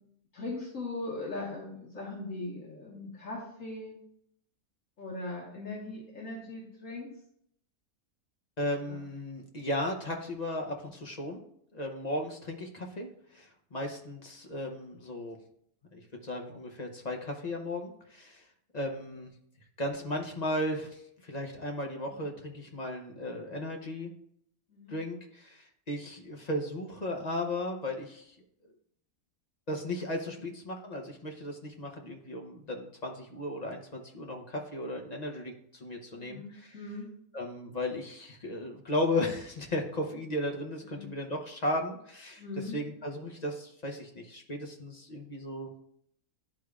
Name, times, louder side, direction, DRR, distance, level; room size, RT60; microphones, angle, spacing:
voice 1, 0.3-4.0 5.0-7.1 8.8-9.0 22.1-22.3 24.7-25.0 30.3-30.4 36.1-37.1 40.8-41.1 42.4-42.8, left 2 dB, 65° left, -5 dB, 1.8 m, -40 dB
voice 2, 8.6-11.4 11.7-15.4 15.9-18.5 18.7-19.3 19.8-24.1 24.9-28.4 29.7-36.7 37.3-42.4 42.7-45.7, left 1 dB, 40° left, 1 dB, 0.6 m, -35 dB
11.5 x 4.9 x 2.4 m, 0.71 s
omnidirectional pair, 1.5 m